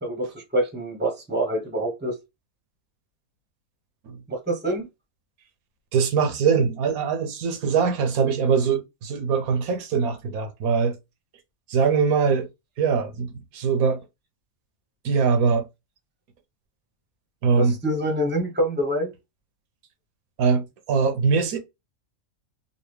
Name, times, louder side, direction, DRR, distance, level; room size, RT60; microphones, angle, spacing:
voice 1, 0.0-2.2 4.3-4.9 17.6-19.1, right 1 dB, 10° right, 0.9 m, -26 dB
voice 2, 5.9-11.0 11.7-12.5 12.8-14.0 15.0-15.6 17.4-17.8 20.4-21.6, right 5 dB, 85° right, 1.3 m, -22 dB
3.9 x 2.4 x 3.3 m
omnidirectional pair, 1.5 m